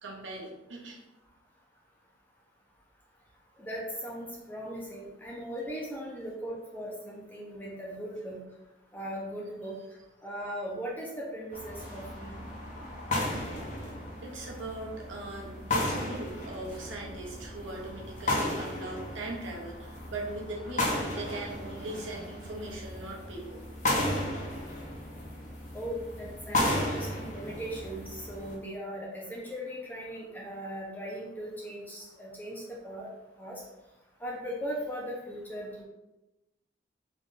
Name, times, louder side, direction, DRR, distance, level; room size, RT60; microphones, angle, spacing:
voice 1, 0.0-1.0 14.2-23.6, right 2 dB, 85° right, -1 dB, 0.9 m, -40 dB
voice 2, 3.6-8.4 8.9-9.7 10.2-12.4 25.7-33.1 33.4-33.6 34.2-35.8, equal, 10° left, -4 dB, 0.7 m, -38 dB
sound 1, 11.5-28.5, left 1 dB, 40° left, 0.7 m, -34 dB
3.8 x 2.6 x 3.7 m, 0.99 s
head